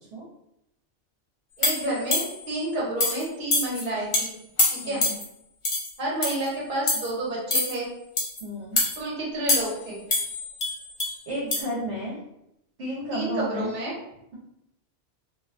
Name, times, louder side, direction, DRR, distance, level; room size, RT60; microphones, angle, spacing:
sound 1, 1.6-2.5 3.0-3.2 3.5-3.8 4.1-4.2 4.6-5.2 5.6-5.9 6.2-6.5 6.9-7.1 7.5-7.7 8.2-8.4 8.8-9.0 9.5-9.8 10.1-11.1 11.5-11.6, left 2 dB, 50° left, 0.3 m, -25 dB
voice 1, 1.6-4.3 4.7-5.0 6.0-7.9 9.0-10.0 13.1-13.9, right 1 dB, 45° right, -5 dB, 0.9 m, -30 dB
voice 2, 4.8-5.1 8.4-8.8 11.3-12.2 12.8-13.7, right 1 dB, 70° right, -5 dB, 0.9 m, -32 dB
2.5 x 2.2 x 2.4 m, 0.81 s
omnidirectional pair, 1.2 m